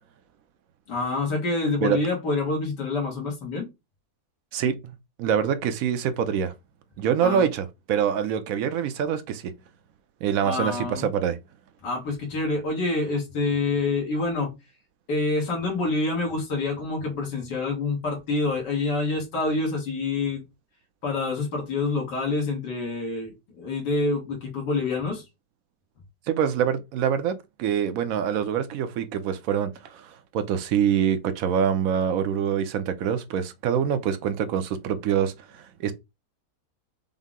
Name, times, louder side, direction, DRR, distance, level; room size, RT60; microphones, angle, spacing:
voice 1, 0.9-3.7 7.2-7.5 10.4-11.1 11.8-14.5 15.1-20.4 21.0-25.2, left 3 dB, 90° left, 2.0 m, -27 dB
voice 2, 4.5-4.9 5.2-6.5 7.0-9.5 10.2-11.4 26.3-35.9, right 8 dB, 70° right, 0.9 m, -25 dB
5.5 x 2.0 x 3.6 m
omnidirectional pair, 1.8 m